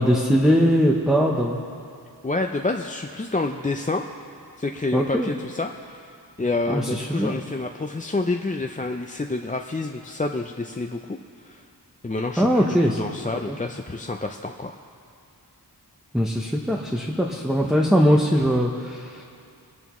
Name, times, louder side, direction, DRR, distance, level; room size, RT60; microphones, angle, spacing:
voice 1, 0.0-1.6 4.9-5.3 6.7-7.4 12.4-13.0 13.5-13.6 16.1-19.2, equal, ahead, -1 dB, 0.9 m, -21 dB
voice 2, 2.2-4.0 4.6-11.2 11.4-11.6 12.0-14.8, left 3 dB, 20° left, 3 dB, 0.5 m, -28 dB
24.5 x 10.5 x 3.1 m, 2.4 s
wide cardioid pair, 65°, 41 cm